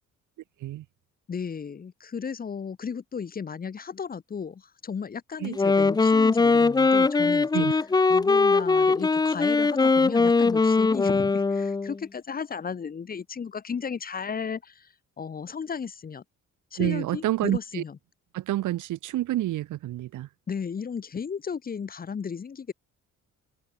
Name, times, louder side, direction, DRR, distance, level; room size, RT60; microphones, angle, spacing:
voice 1, 1.3-7.8 8.1-16.2 16.7-18.0 20.5-22.7, left 6 dB, 30° left, 2.6 m, -34 dB
Wind instrument woodwind instrument, 5.4-12.0, left 4 dB, 15° left, 0.6 m, -21 dB
voice 2, 16.8-17.8 18.3-20.3, right 15 dB, 85° right, 1.6 m, -28 dB
open air
cardioid pair, 175°, 30 cm